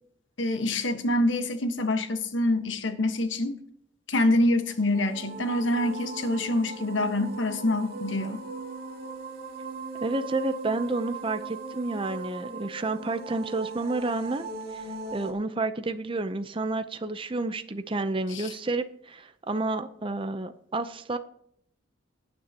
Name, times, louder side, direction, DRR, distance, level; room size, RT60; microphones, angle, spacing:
voice 1, 0.4-3.6 4.1-8.4 18.3-18.5, left 1 dB, 70° left, 8 dB, 1.3 m, -26 dB
sound 1, 4.7-15.3, right 4 dB, 55° right, 2.1 m, -39 dB
voice 2, 10.0-14.4 14.7-21.2, right 2 dB, 25° right, 9 dB, 0.6 m, -30 dB
17.5 x 9.4 x 2.9 m, 0.67 s
head